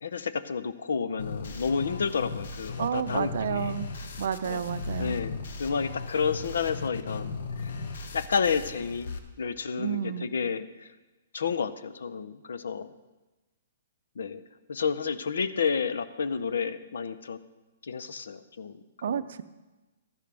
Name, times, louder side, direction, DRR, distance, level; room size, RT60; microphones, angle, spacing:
voice 1, 0.0-3.8 4.4-4.6 5.0-7.7 8.1-10.9 11.3-12.9 14.2-14.4 14.7-17.4 17.8-18.8 19.1-19.2, left 6 dB, 85° left, 14 dB, 0.6 m, -30 dB
sound 1, 1.2-9.2, left 4 dB, 70° left, 1.0 m, -37 dB
voice 2, 2.8-3.9 4.2-5.2 9.8-10.3 19.0-19.4, right 8 dB, 65° right, 13 dB, 0.5 m, -30 dB
12.5 x 10.0 x 3.4 m, 1.1 s
hypercardioid pair, 155°, 0 cm